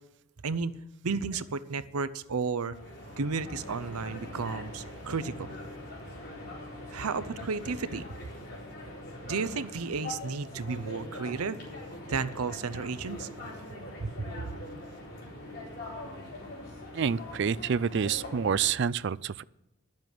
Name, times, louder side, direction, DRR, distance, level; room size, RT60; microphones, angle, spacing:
voice 1, 1.0-2.7 3.2-5.6 6.9-8.0 9.2-11.6 12.1-13.3 14.0-14.5, right 4 dB, 85° right, 14 dB, 0.7 m, -33 dB
sound 1, 2.7-18.7, left 1 dB, 45° left, 4.1 m, -42 dB
voice 2, 16.9-19.4, right 7 dB, 55° right, 19 dB, 0.4 m, -28 dB
11.5 x 7.5 x 9.2 m, 0.86 s
head